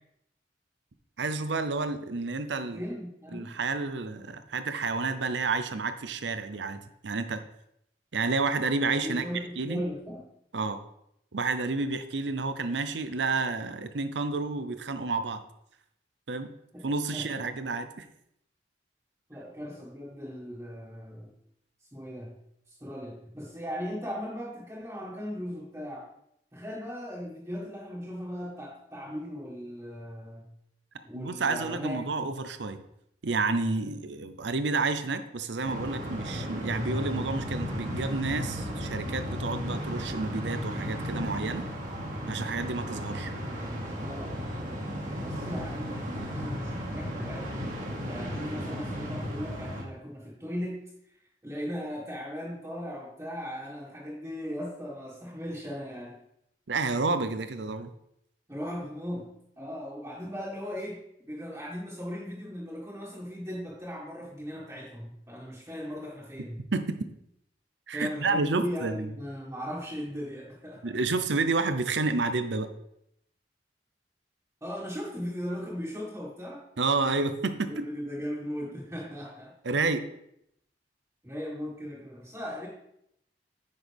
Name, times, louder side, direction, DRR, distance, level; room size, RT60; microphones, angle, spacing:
voice 1, 1.2-2.8 3.3-7.4 8.1-9.2 9.6-9.8 10.5-10.8 11.3-15.4 16.3-16.5 16.8-18.1 31.1-32.8 33.2-41.6 42.3-43.3 56.7-57.9 66.7-67.0 67.9-69.1 70.8-72.7 76.8-77.8 79.6-80.0, right 3 dB, 75° right, 10 dB, 0.7 m, -30 dB
voice 2, 2.7-3.5 9.0-10.3 16.7-16.9 17.1-17.5 19.3-21.3 21.9-22.3 22.8-26.1 26.5-30.5 31.0-32.3 44.0-44.4 45.2-47.5 48.0-51.2 51.4-56.2 58.5-59.3 59.6-66.6 67.9-70.9 74.6-76.6 77.7-79.5 81.2-82.7, equal, 15° right, -8 dB, 1.8 m, -38 dB
sound 1, 35.6-49.8, equal, 50° right, 1.8 m, -34 dB
9.3 x 6.2 x 3.5 m, 0.76 s
head